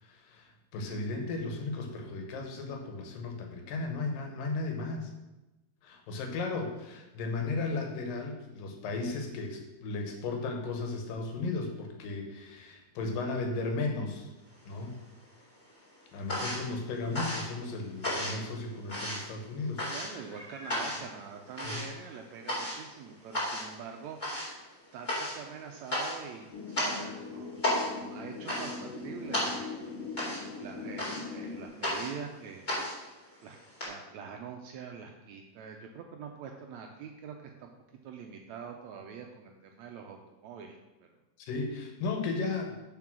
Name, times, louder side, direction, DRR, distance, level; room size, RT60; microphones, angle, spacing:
voice 1, 0.0-5.1 5.8-14.3 14.7-14.9 16.1-19.8 20.1-20.3 21.6-21.8 41.4-42.8, left 3 dB, 85° left, 3 dB, 2.9 m, -35 dB
sound 1, 14.5-15.3 15.6-33.9, left 1 dB, 15° left, 3.3 m, -35 dB
voice 2, 19.9-24.2 24.9-29.7 30.6-32.9 33.4-33.6 33.9-37.7 38.0-41.1, right 6 dB, 80° right, 3 dB, 1.7 m, -45 dB
Meow, 20.3-21.0 21.8-21.9 22.4-22.5 26.4-26.5, right 2 dB, ahead, 1.1 m, -46 dB
sound 2, 26.5-31.6, left 4 dB, 65° left, 1.5 m, -41 dB
7.3 x 5.7 x 6.1 m, 1.0 s
omnidirectional pair, 3.8 m